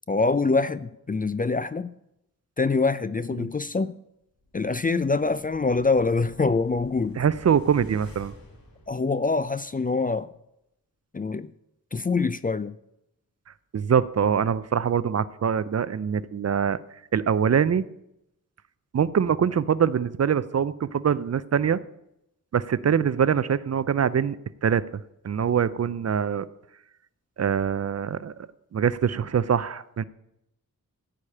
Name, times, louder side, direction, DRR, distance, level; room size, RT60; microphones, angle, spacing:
voice 1, 0.1-1.9 2.6-3.9 4.5-7.2 8.9-10.3 11.1-11.5 11.9-12.7, left 4 dB, 25° left, 0.4 m, -25 dB
sound 1, 4.4-9.6 10.0-10.1, left 1 dB, 85° left, 2.5 m, -49 dB
voice 2, 7.2-8.3 13.7-16.8 17.1-17.9 18.9-21.8 22.5-24.4 24.6-24.8 25.2-26.5 27.4-28.3 28.7-30.0, right 7 dB, 50° right, 0.5 m, -23 dB
14.5 x 4.9 x 8.6 m
wide cardioid pair, 130°, 34 cm